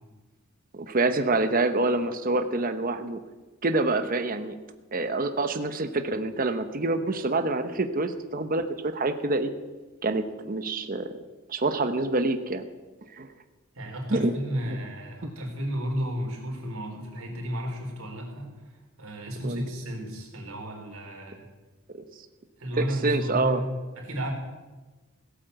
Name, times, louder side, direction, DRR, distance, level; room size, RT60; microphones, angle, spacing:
voice 1, 0.7-3.2 3.6-4.5 4.9-9.5 10.0-11.1 11.5-12.6 13.1-13.3 14.1-14.3 14.6-14.7 19.4-19.6 21.9-22.0 22.8-23.6, right 2 dB, 40° right, 8 dB, 0.9 m, -26 dB
voice 2, 13.7-18.5 19.0-21.5 22.6-24.3, equal, 85° right, 1 dB, 4.1 m, -33 dB
17.0 x 8.5 x 8.0 m, 1.2 s
head